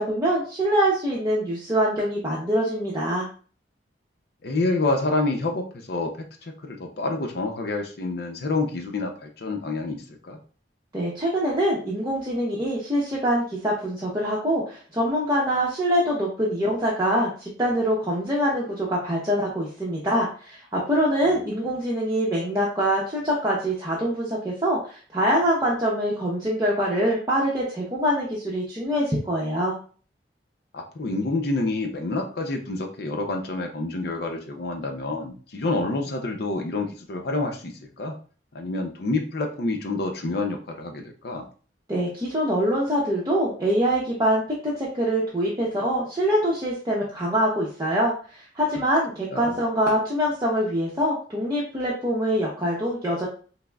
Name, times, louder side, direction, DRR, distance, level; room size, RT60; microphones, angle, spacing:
voice 1, 0.0-3.3 10.9-29.8 41.9-48.1 48.5-53.3, equal, 20° right, -6 dB, 0.7 m, -24 dB
voice 2, 4.4-10.4 21.2-21.4 30.7-38.2 38.5-41.5 49.3-49.6, left 2 dB, 60° left, 3 dB, 0.5 m, -28 dB
5.7 x 2.0 x 2.3 m, 0.40 s
head